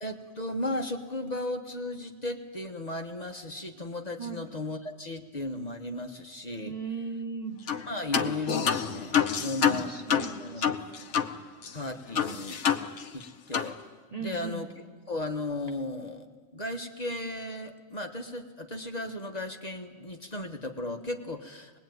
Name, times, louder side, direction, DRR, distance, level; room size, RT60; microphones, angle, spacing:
voice 1, 0.0-6.7 7.8-9.9 10.4-11.0 11.7-12.6 13.1-13.8 14.2-14.7 15.1-21.8, left 2 dB, 35° left, 4 dB, 1.5 m, -35 dB
voice 2, 6.6-7.6 9.6-10.7 14.1-14.6, right 4 dB, 35° right, 5 dB, 1.2 m, -37 dB
sound 1, 7.7-7.9 8.1-11.3 11.6-11.7 12.2-13.3 13.5-13.7, left 7 dB, 65° left, 1.3 m, -27 dB
25.0 x 20.5 x 9.4 m, 1.5 s
omnidirectional pair, 1.3 m